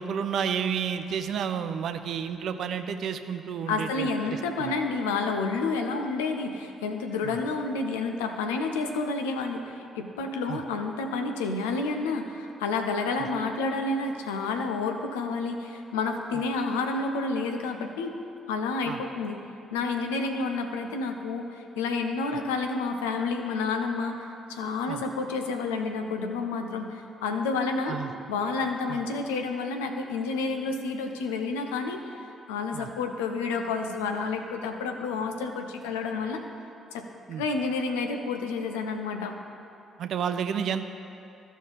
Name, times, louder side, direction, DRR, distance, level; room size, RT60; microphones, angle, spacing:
voice 1, 0.0-4.7 7.2-7.4 10.5-10.6 18.9-19.0 24.9-25.0 27.9-28.1 28.9-29.0 32.7-32.9 37.3-37.4 40.0-40.8, right 7 dB, 60° right, 8 dB, 0.5 m, -31 dB
voice 2, 3.7-18.1 18.5-19.4 19.7-24.1 24.5-28.0 28.3-32.0 32.5-36.4 36.9-37.1 37.4-39.4, left 4 dB, 80° left, 5 dB, 0.6 m, -30 dB
14.0 x 5.1 x 4.1 m, 2.6 s
figure-of-eight pair, 45°, 0 cm